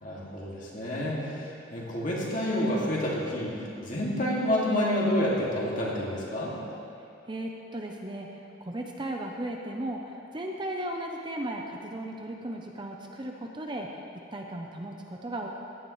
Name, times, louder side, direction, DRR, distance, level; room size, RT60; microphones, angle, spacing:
voice 1, 0.0-6.5, left 1 dB, 40° left, -5 dB, 2.3 m, -29 dB
voice 2, 7.3-14.0 14.3-15.5, right 1 dB, 25° right, 1 dB, 0.6 m, -36 dB
16.0 x 11.0 x 3.2 m, 2.7 s
head